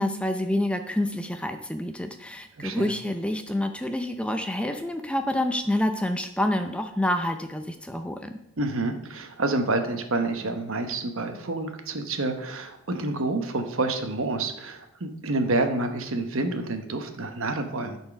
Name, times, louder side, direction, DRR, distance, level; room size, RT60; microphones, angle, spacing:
voice 1, 0.0-8.3, left 1 dB, 5° left, 6 dB, 0.4 m, -28 dB
voice 2, 2.6-2.9 8.6-18.0, right 2 dB, 70° right, 6 dB, 1.1 m, -28 dB
12.0 x 4.5 x 5.9 m, 0.83 s
head